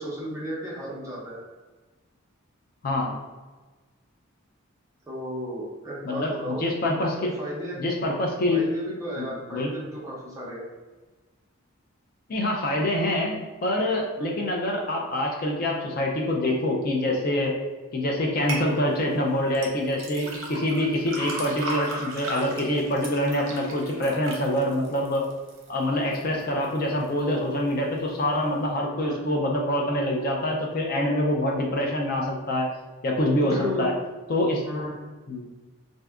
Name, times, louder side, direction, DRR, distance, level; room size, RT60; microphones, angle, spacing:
voice 1, 0.0-1.4 5.1-6.6 7.4-7.8 8.5-10.6 14.2-14.3 29.0-29.2 33.4-33.9 34.6-34.9, equal, 15° right, -5 dB, 0.6 m, -34 dB
voice 2, 6.0-7.3 7.8-8.6 9.2-9.7 12.3-17.5 17.9-25.3 25.7-32.7 33.0-33.9 34.3-34.6 35.3-35.5, left 1 dB, 40° left, 0 dB, 0.4 m, -25 dB
sound 1, 18.5-18.7 19.5-25.7 26.1-26.6 27.1-27.2, right 2 dB, 65° right, 0.7 m, -35 dB
2.6 x 2.3 x 3.4 m, 1.3 s
head